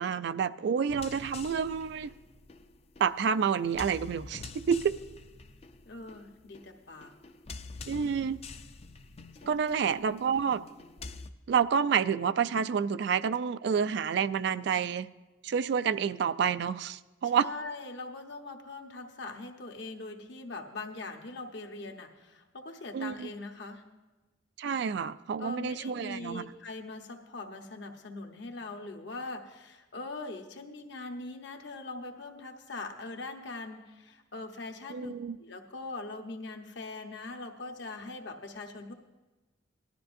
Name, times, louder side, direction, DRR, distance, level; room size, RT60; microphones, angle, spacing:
voice 1, 0.0-2.1 3.0-4.9 7.9-8.4 9.4-10.6 11.5-15.1 15.4-17.5 22.9-23.3 24.6-26.5 34.9-35.4, right 7 dB, 60° right, 14 dB, 0.3 m, -29 dB
sound 1, 0.9-11.3, left 4 dB, 30° left, 0.4 m, -47 dB
voice 2, 5.9-7.1 9.4-9.6 17.2-23.9 25.4-35.1 35.4-38.9, left 3 dB, 60° left, 4 dB, 1.0 m, -42 dB
18.0 x 12.5 x 2.6 m, 1.2 s
head